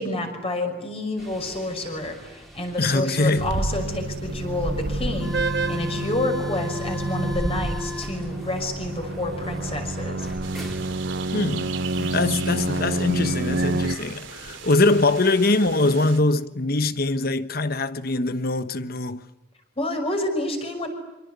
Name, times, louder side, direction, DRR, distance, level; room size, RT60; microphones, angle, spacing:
voice 1, 0.0-10.3 12.0-12.3 19.8-20.9, left 1 dB, 30° left, 6.0 m, -29 dB
sound 1, 1.2-15.2, left 2 dB, ahead, 3.8 m, -40 dB
voice 2, 2.8-3.5 11.3-11.8 12.1-19.2, left 2 dB, 55° left, 1.2 m, -22 dB
sound 2, 3.4-14.0, right 2 dB, 60° right, 1.2 m, -28 dB
sound 3, 10.4-16.2, right 8 dB, 85° right, 2.9 m, -39 dB
27.5 x 26.0 x 8.2 m
head